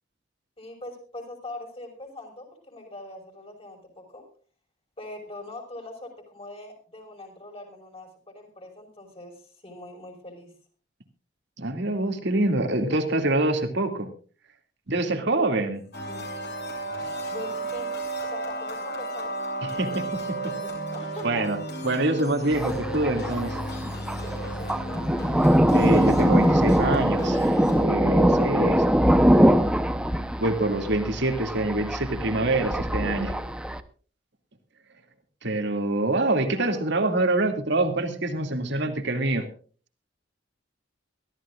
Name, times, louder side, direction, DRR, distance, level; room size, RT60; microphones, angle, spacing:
voice 1, 0.6-4.2 5.0-10.5 16.0-16.3 17.3-19.4 19.7-19.8 20.5-21.5 24.6-25.4 28.6-29.8 36.3-37.0, left 2 dB, 30° left, 2 dB, 5.3 m, -42 dB
voice 2, 11.6-14.1 14.9-15.8 19.8-20.0 21.2-21.6 21.8-23.6 25.7-28.8 30.4-33.4 35.4-39.5, right 2 dB, 65° right, 6 dB, 2.4 m, -25 dB
sound 1, 15.9-27.8, right 1 dB, 60° left, 6.8 m, -33 dB
Thunder, 22.5-33.8, equal, 5° right, 0.8 m, -23 dB
23.5 x 14.0 x 2.5 m, 0.40 s
head